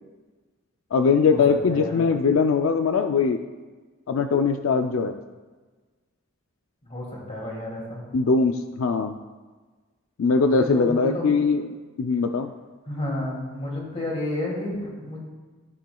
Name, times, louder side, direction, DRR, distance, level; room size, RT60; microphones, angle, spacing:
voice 1, 0.9-3.4 4.1-5.2 8.1-9.2 10.2-11.7 12.0-12.5, left 4 dB, 80° left, 7 dB, 0.4 m, -21 dB
voice 2, 1.7-2.0 6.8-8.0 10.4-11.3 12.9-15.2, left 1 dB, 30° left, -3 dB, 2.5 m, -31 dB
13.0 x 9.0 x 2.3 m, 1.3 s
head